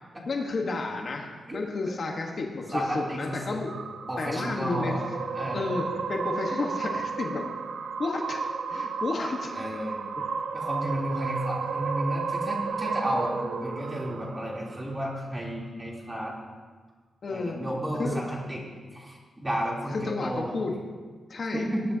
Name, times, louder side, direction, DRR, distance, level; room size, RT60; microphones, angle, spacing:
voice 1, 0.3-3.7 4.2-5.2 5.5-7.6 8.0-8.4 8.7-9.6 10.2-10.4 10.8-11.0 17.2-17.6 18.0-18.2 19.9-21.7, left 3 dB, 50° left, 1 dB, 1.3 m, -32 dB
voice 2, 2.7-3.6 4.1-5.0 5.3-5.7 9.5-10.0 10.5-16.3 17.3-18.6 18.9-20.5 21.5-21.8, right 1 dB, 15° right, -4 dB, 3.3 m, -32 dB
sound 1, 2.7-15.2, right 5 dB, 70° right, 0.6 m, -33 dB
20.5 x 10.0 x 2.9 m, 1.4 s
cardioid pair, 105°, 0 cm